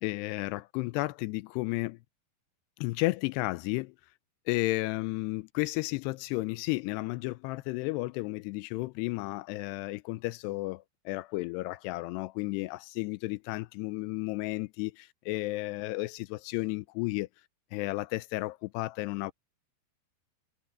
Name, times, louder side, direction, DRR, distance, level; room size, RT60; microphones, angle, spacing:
voice 1, 0.0-2.0 2.8-4.0 4.5-17.3 17.7-19.3, left 21 dB, 85° left, 2.7 m, -33 dB
omnidirectional pair, 4.8 m